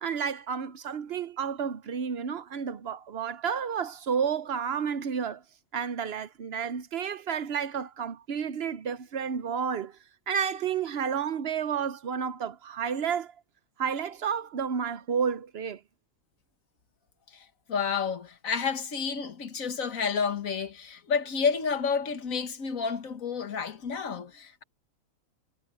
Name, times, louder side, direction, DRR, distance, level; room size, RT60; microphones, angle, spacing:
voice 1, 0.0-5.4 5.7-10.0 10.3-13.3 13.8-15.8, right 7 dB, 55° right, 0.9 m, -31 dB
voice 2, 17.3-24.6, left 6 dB, 90° left, 1.8 m, -30 dB
omnidirectional pair, 1.4 m